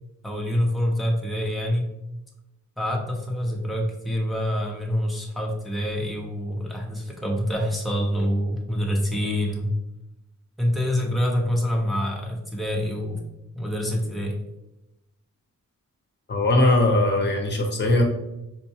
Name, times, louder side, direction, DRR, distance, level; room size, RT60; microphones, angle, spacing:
voice 1, 0.2-1.9 2.8-9.7 10.6-13.3 13.5-14.4, equal, ahead, -1 dB, 0.6 m, -26 dB
voice 2, 16.3-18.0, left 1 dB, 35° left, 1 dB, 0.7 m, -20 dB
4.5 x 2.2 x 2.8 m, 0.92 s
wide cardioid pair, 135°, 33 cm